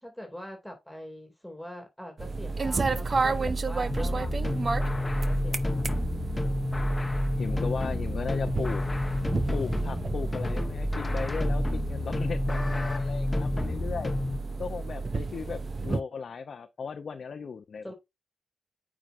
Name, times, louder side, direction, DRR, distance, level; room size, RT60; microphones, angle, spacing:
voice 1, 0.0-5.9 17.8-17.9, equal, 5° left, 2.4 m, -44 dB
sound 1, 2.2-16.0, right 3 dB, 45° right, 0.5 m, -32 dB
sound 2, 3.9-14.4, left 2 dB, 25° left, 1.0 m, -30 dB
voice 2, 7.4-8.8 9.5-14.1 14.6-17.9, left 5 dB, 70° left, 0.6 m, -36 dB
8.8 x 4.9 x 2.6 m
cardioid pair, 75°, 0 cm